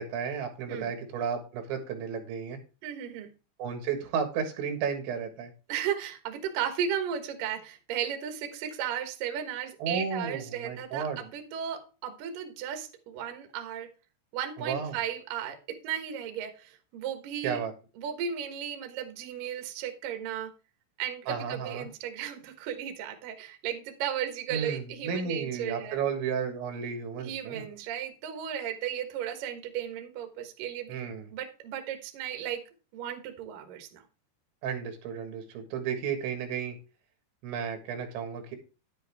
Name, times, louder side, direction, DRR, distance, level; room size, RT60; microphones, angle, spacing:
voice 1, 0.0-2.6 3.6-5.5 9.8-11.2 14.6-15.0 17.4-17.7 21.3-21.9 24.5-27.6 30.9-31.3 34.6-36.8 37.4-38.6, right 6 dB, 90° right, 5 dB, 4.0 m, -33 dB
voice 2, 2.8-3.3 5.7-13.9 14.3-15.6 15.8-17.6 18.0-20.5 21.0-26.0 27.2-31.1 31.3-32.6 32.9-34.0, right 9 dB, 65° right, 6 dB, 2.5 m, -35 dB
10.5 x 7.8 x 3.5 m, 0.33 s
omnidirectional pair, 5.2 m